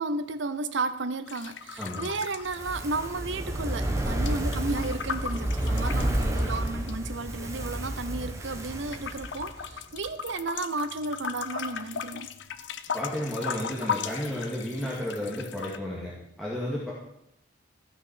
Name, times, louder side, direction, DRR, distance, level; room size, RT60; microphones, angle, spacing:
voice 1, 0.0-12.4, right 3 dB, 60° right, 0.8 m, -33 dB
sound 1, 1.3-3.3 3.6-6.9 7.6-8.5 8.9-15.8, left 7 dB, 60° left, 0.6 m, -37 dB
voice 2, 1.8-2.1 12.9-16.1 16.4-16.9, left 1 dB, ahead, 2.2 m, -32 dB
Fire, 2.4-9.8 10.1-10.2, right 1 dB, 15° right, 1.1 m, -30 dB
14.5 x 6.2 x 6.2 m
head